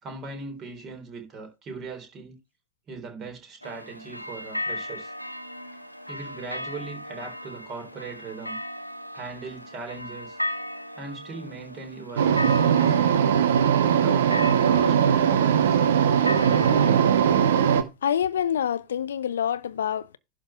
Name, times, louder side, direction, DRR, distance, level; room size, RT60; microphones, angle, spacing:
voice 1, 0.0-2.3 2.9-5.1 6.1-8.6 9.1-10.4 10.9-13.3 13.9-15.8, right 4 dB, 30° right, 3.7 m, -39 dB
sound 1, 3.6-17.7, left 1 dB, 90° right, 0.8 m, -37 dB
sound 2, 12.2-17.8, right 8 dB, 60° right, 1.0 m, -20 dB
voice 2, 18.0-20.2, left 9 dB, 65° left, 0.6 m, -26 dB
11.5 x 3.9 x 5.8 m
figure-of-eight pair, 90°, 0 cm